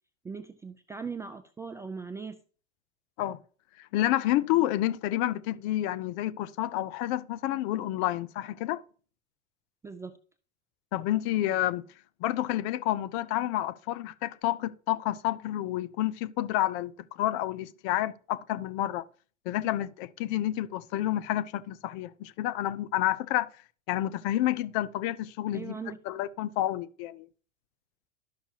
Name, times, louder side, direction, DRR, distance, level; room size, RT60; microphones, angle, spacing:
voice 1, 0.2-2.4 9.8-10.2 25.5-26.0, right 5 dB, 10° right, 0.3 m, -39 dB
voice 2, 3.8-8.8 10.9-11.8 12.2-19.0 19.5-23.5 23.9-25.8 26.1-27.3, left 14 dB, 45° left, 0.6 m, -29 dB
12.0 x 5.7 x 2.8 m
hypercardioid pair, 95°, 35 cm